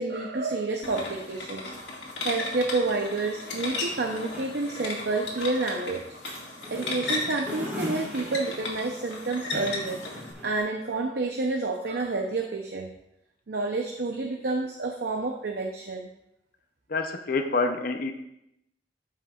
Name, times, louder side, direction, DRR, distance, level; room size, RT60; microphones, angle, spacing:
voice 1, 0.0-1.7 2.2-6.0 6.7-10.0 10.4-12.9 13.5-16.1, right 3 dB, 65° right, 1 dB, 0.7 m, -29 dB
sound 1, 0.8-10.3, left 2 dB, 80° left, 1.8 m, -35 dB
elevator closing, 3.4-10.6, equal, 10° right, 2.7 m, -41 dB
voice 2, 16.9-18.1, left 3 dB, 55° left, 5 dB, 0.6 m, -27 dB
12.5 x 5.6 x 2.4 m, 0.83 s
head